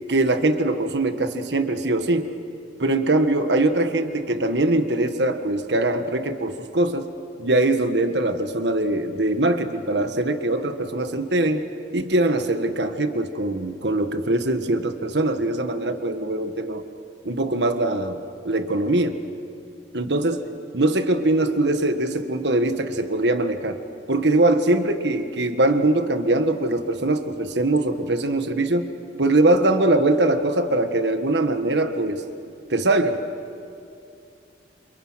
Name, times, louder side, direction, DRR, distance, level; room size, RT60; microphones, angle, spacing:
voice 1, 0.1-2.3 2.8-7.0 7.4-16.8 17.2-19.2 19.9-20.4 20.7-23.8 24.1-28.9 29.2-32.2 32.7-33.2, right 2 dB, 70° right, 7 dB, 1.6 m, -22 dB
28.5 x 27.0 x 6.3 m, 2.5 s
head